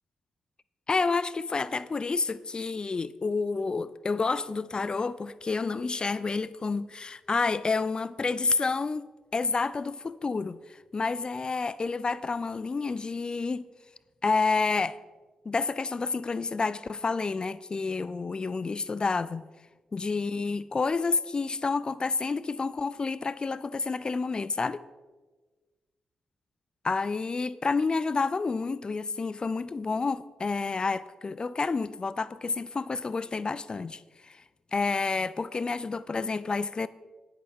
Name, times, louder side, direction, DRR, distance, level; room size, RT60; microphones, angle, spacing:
voice 1, 0.9-9.1 9.3-13.6 14.2-15.0 15.5-19.5 19.9-24.8 26.8-34.4 34.7-36.9, left 4 dB, 40° left, 0.4 m, -29 dB
11.0 x 10.5 x 3.6 m
supercardioid pair, 50°, 2 cm